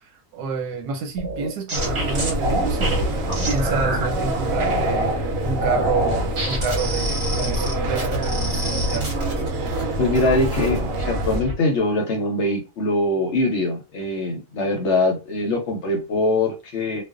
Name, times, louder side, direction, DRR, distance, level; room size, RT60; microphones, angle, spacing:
voice 1, 0.0-9.1, right 5 dB, 90° right, 1.2 m, -29 dB
sound 1, 1.2-4.1 4.5-5.2 5.6-9.8 10.1-10.8 11.2-11.5, right 1 dB, 40° right, 1.0 m, -27 dB
sound 2, 1.7-11.4, right 1 dB, 70° right, 0.9 m, -25 dB
voice 2, 10.0-17.0, left 2 dB, 60° left, 0.8 m, -22 dB
2.5 x 2.2 x 2.3 m
omnidirectional pair, 1.6 m